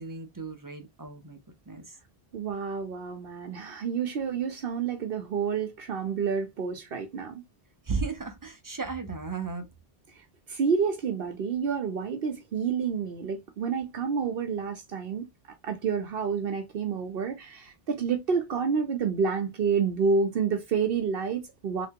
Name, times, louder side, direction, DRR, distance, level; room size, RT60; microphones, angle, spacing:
voice 1, 0.0-1.4 1.7-2.0 7.8-9.7, right 4 dB, 25° right, 0.6 m, -35 dB
voice 2, 2.3-7.4 10.1-15.3 15.6-21.9, right 6 dB, 65° right, 0.9 m, -29 dB
3.3 x 2.9 x 2.8 m
omnidirectional pair, 1.0 m